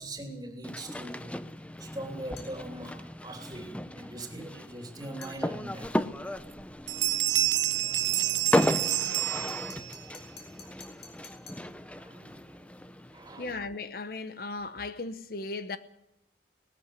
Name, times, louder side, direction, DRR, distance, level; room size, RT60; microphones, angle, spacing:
voice 1, 0.0-1.3 1.8-5.9 8.1-8.2 9.4-9.5 10.6-10.7 12.0-13.6, right 1 dB, 20° right, 3.1 m, -42 dB
sound 1, 0.6-13.5, left 1 dB, 5° left, 0.7 m, -35 dB
sound 2, 2.4-2.6 5.2-5.4 8.0-11.7, left 5 dB, 70° left, 5.2 m, -50 dB
sound 3, 5.8-5.9 6.4-6.6 6.9-10.0, right 16 dB, 80° right, 0.9 m, -28 dB
voice 2, 13.4-15.8, left 3 dB, 50° left, 0.9 m, -36 dB
19.5 x 14.0 x 9.7 m
head